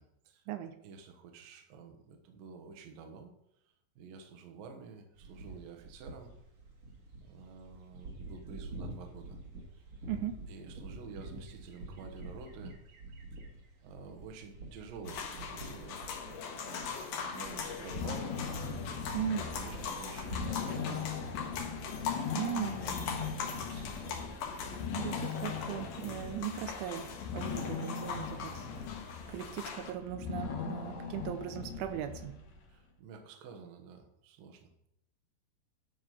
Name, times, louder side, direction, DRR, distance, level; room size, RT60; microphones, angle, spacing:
voice 1, 0.0-0.4 0.8-3.3 4.0-6.3 7.2-9.4 10.5-12.7 13.8-18.4 19.4-24.3 29.3-29.6 32.7-34.9, right 5 dB, 65° right, 4 dB, 2.4 m, -50 dB
sound 1, 5.1-20.9, right 2 dB, 50° right, 2.0 m, -48 dB
voice 2, 10.1-10.4 19.1-19.5 22.3-22.8 25.0-28.5 28.9-32.4, right 10 dB, 85° right, 8 dB, 3.0 m, -38 dB
sound 2, 15.1-29.9, left 6 dB, 65° left, 2.9 m, -41 dB
sound 3, 17.3-32.7, left 6 dB, 90° left, 1.5 m, -40 dB
12.5 x 4.9 x 5.6 m, 0.77 s
omnidirectional pair, 5.5 m